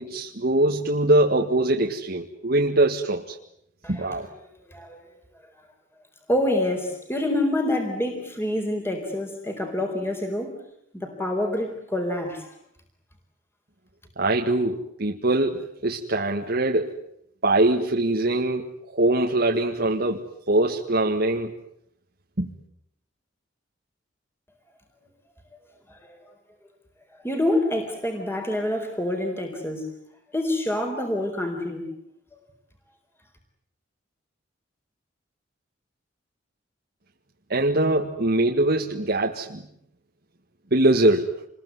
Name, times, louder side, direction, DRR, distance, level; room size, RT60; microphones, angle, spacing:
voice 1, 0.0-3.4 3.9-4.3 14.2-16.9 17.4-21.5 22.4-22.5 37.5-39.6 40.7-41.3, right 1 dB, 55° right, 1 dB, 1.9 m, -22 dB
voice 2, 3.8-4.2 4.7-5.0 6.3-10.6 10.9-12.5 25.9-26.2 27.2-29.9 30.3-31.8, left 1 dB, 15° left, 3 dB, 4.3 m, -27 dB
28.0 x 21.5 x 9.6 m, 0.75 s
head